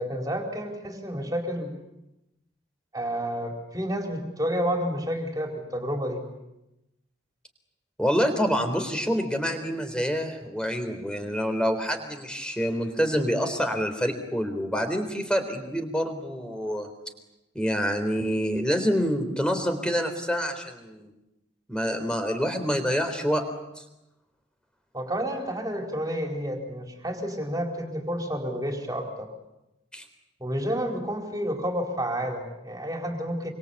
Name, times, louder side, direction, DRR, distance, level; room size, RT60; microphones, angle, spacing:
voice 1, 0.0-1.8 2.9-6.2 24.9-29.3 30.4-33.5, equal, 20° right, 2 dB, 4.6 m, -30 dB
voice 2, 8.0-16.9 17.6-21.1 21.7-23.4 23.8-23.9 29.9-30.0, equal, 5° left, 6 dB, 3.8 m, -27 dB
26.5 x 25.5 x 8.4 m, 0.93 s
head